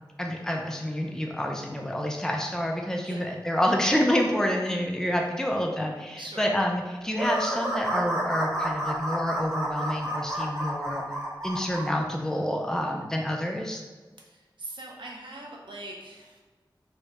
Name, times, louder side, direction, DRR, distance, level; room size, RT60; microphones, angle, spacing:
voice 1, 0.2-11.0 11.4-13.8, equal, 5° left, 1 dB, 0.5 m, -28 dB
voice 2, 6.2-6.5 14.2-16.4, right 1 dB, 80° right, -1 dB, 0.7 m, -41 dB
sound 1, 7.1-11.9, right 1 dB, 40° right, 1.0 m, -30 dB
3.4 x 2.3 x 4.1 m, 1.3 s
wide cardioid pair, 55°, 8 cm